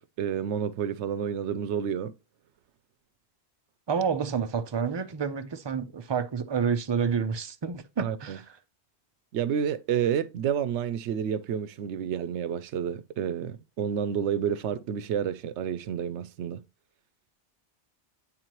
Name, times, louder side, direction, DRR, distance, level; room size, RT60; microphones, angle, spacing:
voice 1, 0.0-2.1 8.0-8.4 9.3-16.6, right 8 dB, 85° right, 0.9 m, -30 dB
voice 2, 3.9-8.6, right 6 dB, 35° right, 0.4 m, -29 dB
9.1 x 3.7 x 3.0 m
omnidirectional pair, 1.1 m